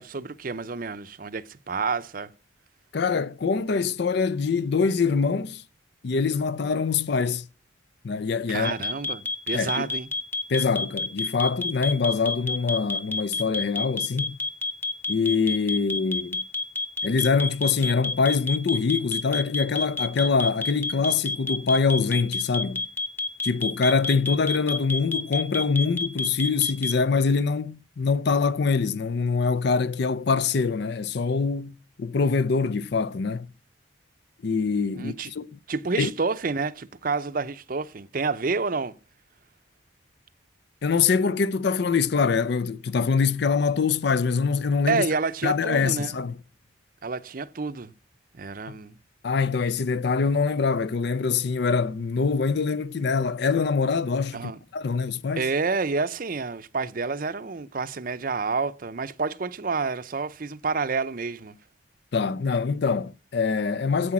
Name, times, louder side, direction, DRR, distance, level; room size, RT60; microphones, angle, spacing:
voice 1, 0.0-2.3 8.5-10.1 34.9-35.3 35.7-38.9 44.9-46.1 47.0-47.9 48.3-49.0 54.3-54.6 55.4-61.5, right 4 dB, 45° right, 0.6 m, -29 dB
voice 2, 2.9-5.6 6.0-7.4 8.0-8.8 9.5-9.9 10.5-14.4 15.1-16.4 17.0-22.8 23.4-33.5 34.4-35.5 36.0-36.1 40.8-45.0 45.4-46.4 48.7-48.8 49.2-55.5 62.1-64.1, left 5 dB, 55° left, 0.4 m, -24 dB
sound 1, 8.6-26.9, left 3 dB, 10° left, 0.6 m, -28 dB
9.7 x 8.5 x 6.0 m
head